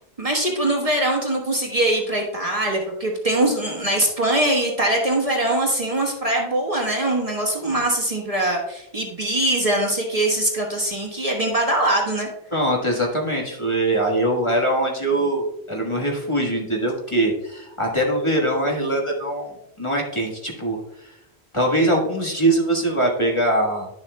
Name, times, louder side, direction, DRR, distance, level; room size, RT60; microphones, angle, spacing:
voice 1, 0.2-12.3, right 1 dB, 35° right, -1 dB, 1.3 m, -22 dB
voice 2, 12.5-21.2 21.5-23.9, right 1 dB, 30° left, -1 dB, 1.5 m, -22 dB
11.0 x 7.0 x 2.2 m, 0.84 s
omnidirectional pair, 1.1 m